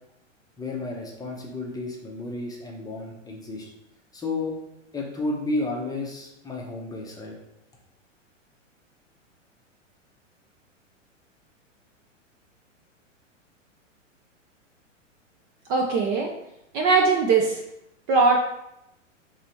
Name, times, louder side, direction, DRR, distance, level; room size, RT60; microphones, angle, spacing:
voice 1, 0.6-3.7 4.1-4.5 4.9-7.3, left 2 dB, 10° left, -1 dB, 0.7 m, -32 dB
voice 2, 15.7-16.3 16.7-17.6 18.1-18.4, right 4 dB, 30° right, 1 dB, 0.5 m, -20 dB
4.8 x 3.4 x 2.9 m, 0.85 s
hypercardioid pair, 110°, 39 cm